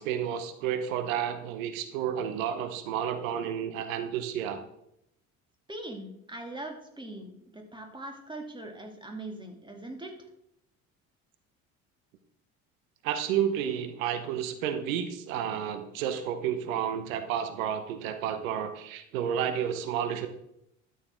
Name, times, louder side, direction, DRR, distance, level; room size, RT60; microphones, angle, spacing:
voice 1, 0.0-4.6 13.0-20.3, right 9 dB, 75° right, 9 dB, 1.0 m, -31 dB
voice 2, 5.7-10.1, right 2 dB, 10° right, 3 dB, 2.5 m, -41 dB
12.5 x 6.9 x 3.7 m, 0.79 s
hypercardioid pair, 60°, 41 cm